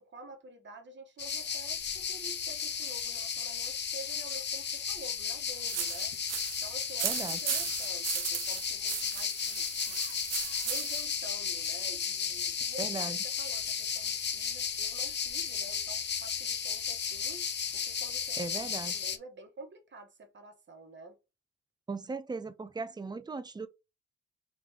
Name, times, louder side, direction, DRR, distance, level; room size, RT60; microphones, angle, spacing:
voice 1, 0.0-6.1 6.6-10.0 10.6-17.5 17.7-21.2, right 2 dB, 40° right, 1.3 m, -49 dB
sound 1, 1.2-19.2, left 7 dB, 35° left, 0.7 m, -34 dB
sound 2, 5.7-11.2, right 9 dB, 55° right, 0.8 m, -36 dB
voice 2, 7.0-7.4 12.8-13.2 18.4-19.0 21.9-23.7, right 4 dB, 15° right, 0.5 m, -37 dB
3.7 x 3.1 x 3.5 m
cardioid pair, 90°, 30 cm